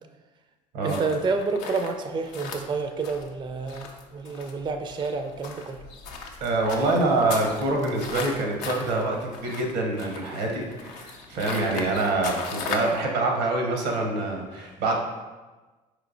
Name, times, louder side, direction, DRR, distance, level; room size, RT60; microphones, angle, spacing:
voice 1, 0.8-5.8, right 4 dB, 20° right, 7 dB, 0.3 m, -29 dB
sound 1, 0.9-13.0, left 4 dB, 75° left, 0.5 m, -37 dB
voice 2, 6.4-15.0, right 2 dB, 80° right, 1 dB, 0.8 m, -25 dB
4.5 x 3.1 x 2.5 m, 1.2 s
hypercardioid pair, 55°, 21 cm